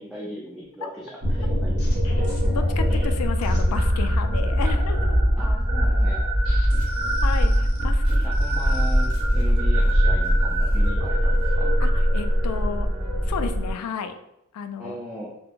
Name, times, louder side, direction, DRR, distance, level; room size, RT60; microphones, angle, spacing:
voice 1, 0.0-2.2 4.6-4.8 5.4-6.2 8.2-11.7 14.8-15.3, equal, 5° right, -6 dB, 0.4 m, -38 dB
sound 1, 1.2-13.7, equal, 30° right, 0.8 m, -21 dB
sound 2, 1.3-4.2 4.6-5.3 5.7-9.9 10.2-10.9 11.3-11.6, left 1 dB, 70° left, 0.7 m, -45 dB
voice 2, 2.5-5.4 7.2-8.2 11.8-12.9 13.2-14.2 14.5-15.0, left 6 dB, 85° left, 9 dB, 0.3 m, -32 dB
2.6 x 2.0 x 2.8 m, 0.80 s
head